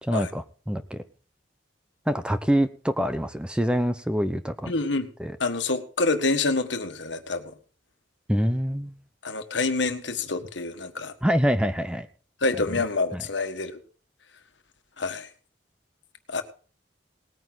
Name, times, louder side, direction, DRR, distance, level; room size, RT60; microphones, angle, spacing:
voice 1, 0.0-1.0 2.1-4.7 5.2-5.4 8.3-9.0 11.2-12.1 13.1-13.2, equal, 5° right, 11 dB, 0.7 m, -25 dB
voice 2, 4.7-5.1 5.4-7.6 9.2-11.1 12.4-13.8 15.0-15.3 16.3-16.4, left 3 dB, 75° left, 7 dB, 1.6 m, -27 dB
19.0 x 9.4 x 4.0 m, 0.39 s
head